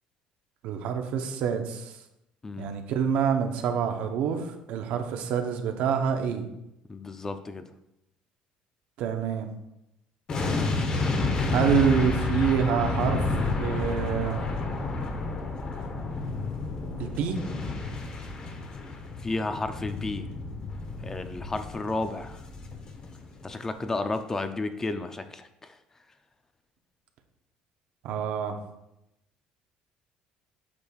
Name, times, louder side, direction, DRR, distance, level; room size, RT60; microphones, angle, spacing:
voice 1, 0.6-1.9 2.6-6.5 9.0-9.5 11.5-13.2 13.6-14.4 17.0-17.4 28.0-28.6, right 7 dB, 70° right, 5 dB, 0.9 m, -27 dB
voice 2, 6.9-7.7 19.2-20.3 21.0-22.4 23.4-25.8, left 2 dB, 20° left, 9 dB, 0.5 m, -32 dB
sound 1, 10.3-23.4 23.7-23.9, left 3 dB, 35° left, 0.9 m, -30 dB
8.5 x 6.3 x 2.4 m, 0.86 s
cardioid pair, 125°, 3 cm